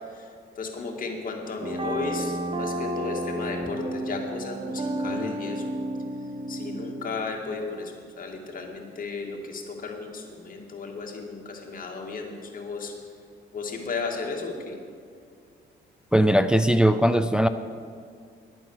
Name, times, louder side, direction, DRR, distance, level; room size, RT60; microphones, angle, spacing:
voice 1, 0.6-5.7 6.5-12.9 13.5-14.8, left 4 dB, 45° left, 0 dB, 2.2 m, -34 dB
sound 1, 1.6-7.2, right 1 dB, 30° right, 1.1 m, -32 dB
voice 2, 16.1-17.5, equal, 5° right, 10 dB, 0.4 m, -19 dB
10.5 x 8.8 x 6.5 m, 2.2 s
cardioid pair, 90°, 20 cm